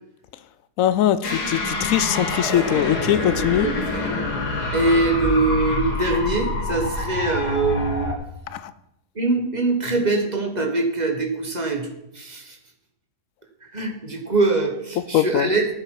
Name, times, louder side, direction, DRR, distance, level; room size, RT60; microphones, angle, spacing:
voice 1, 0.8-3.7 8.5-8.7 15.1-15.5, left 11 dB, 70° left, 15 dB, 0.8 m, -21 dB
sound 1, 1.2-8.1, left 2 dB, 90° left, 2.3 m, -26 dB
voice 2, 3.6-4.2 4.7-8.1 9.1-11.9 12.1-12.6 13.7-15.7, right 3 dB, 30° right, 3 dB, 1.4 m, -23 dB
11.0 x 9.5 x 4.8 m, 0.86 s
omnidirectional pair, 1.7 m